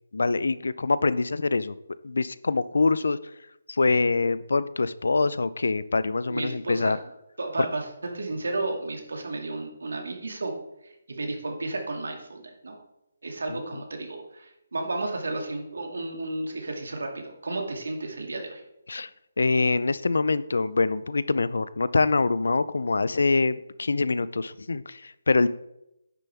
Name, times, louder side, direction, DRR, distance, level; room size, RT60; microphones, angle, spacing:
voice 1, 0.1-1.7 2.0-3.2 3.7-7.0 7.6-7.7 13.5-13.8 18.9-19.1 19.4-25.5, left 3 dB, 80° left, 17 dB, 0.5 m, -24 dB
voice 2, 6.3-7.0 7.4-10.6 10.8-12.8 13.2-18.6, right 2 dB, 90° right, 3 dB, 2.3 m, -33 dB
9.9 x 6.9 x 3.5 m, 0.85 s
hypercardioid pair, 180°, 0 cm